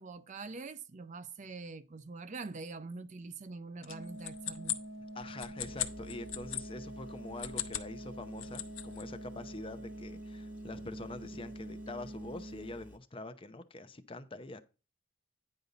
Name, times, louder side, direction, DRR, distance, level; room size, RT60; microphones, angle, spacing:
voice 1, 0.0-4.8, right 3 dB, 35° right, 0.5 m, -44 dB
sound 1, 3.8-6.6 7.3-7.9 8.2-9.0, left 12 dB, 75° left, 0.8 m, -38 dB
sound 2, 3.9-12.7, right 1 dB, 70° right, 1.2 m, -46 dB
voice 2, 5.1-14.6, left 2 dB, 25° left, 0.7 m, -45 dB
Engine, 5.6-13.0, equal, 5° right, 1.1 m, -54 dB
9.6 x 5.3 x 3.9 m
head